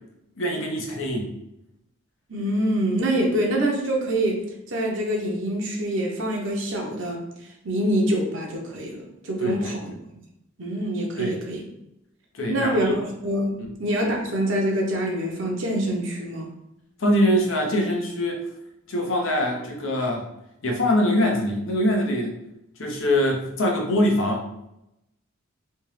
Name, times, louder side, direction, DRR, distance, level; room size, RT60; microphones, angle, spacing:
voice 1, 0.4-1.3 9.4-9.7 11.2-11.4 12.3-13.0 13.6-13.7 17.0-18.4 18.9-20.3 20.6-22.3 22.8-24.4, left 1 dB, 70° left, 1 dB, 0.8 m, -23 dB
voice 2, 2.3-9.9 10.6-11.6 12.5-16.5, right 1 dB, 65° right, -1 dB, 0.8 m, -25 dB
3.4 x 2.9 x 3.2 m, 0.84 s
head